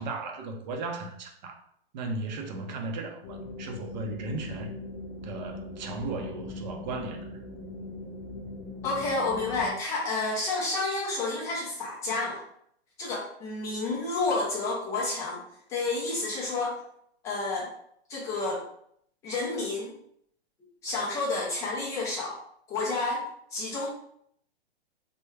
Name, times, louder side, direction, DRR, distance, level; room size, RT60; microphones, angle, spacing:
voice 1, 0.0-1.6 1.9-4.7 5.2-7.3, right 3 dB, 45° right, 0.6 m, -36 dB
sound 1, 3.2-9.7, left 2 dB, 50° left, 0.7 m, -40 dB
voice 2, 8.8-12.4 13.0-15.4 15.7-16.7 17.2-17.7 18.1-18.6 19.2-19.9 20.8-22.4 22.7-23.2 23.5-23.9, left 3 dB, 10° left, 0.4 m, -30 dB
3.4 x 2.2 x 3.2 m
hypercardioid pair, 145°, 32 cm